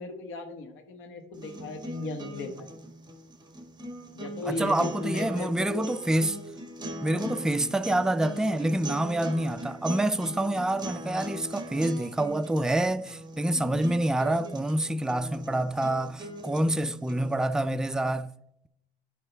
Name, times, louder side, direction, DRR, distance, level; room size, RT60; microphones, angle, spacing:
voice 1, 0.0-2.7 4.1-5.8 7.1-7.4 13.5-13.9, left 3 dB, 90° left, 1.3 m, -37 dB
sound 1, 1.3-17.3, right 1 dB, 20° right, 1.5 m, -40 dB
voice 2, 4.5-6.4 7.0-18.3, right 1 dB, 5° right, 0.3 m, -27 dB
11.0 x 5.3 x 3.3 m
cardioid pair, 90°, 20 cm